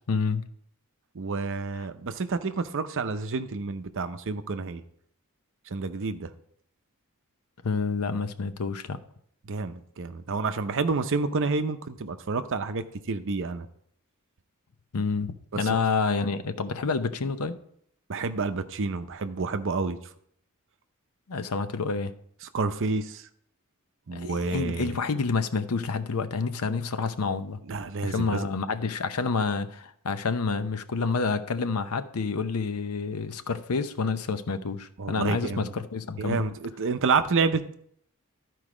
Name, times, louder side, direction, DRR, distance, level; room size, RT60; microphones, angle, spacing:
voice 1, 0.1-0.4 7.6-9.0 14.9-17.6 21.3-22.1 24.1-27.6 28.0-36.4, left 4 dB, 75° left, 11 dB, 0.7 m, -28 dB
voice 2, 1.1-4.8 5.7-6.3 9.5-13.7 15.6-15.8 18.1-20.0 22.5-23.2 24.1-25.0 27.7-28.5 35.0-35.7 36.2-37.7, right 4 dB, 60° right, 10 dB, 0.6 m, -29 dB
12.5 x 4.7 x 4.9 m, 0.67 s
head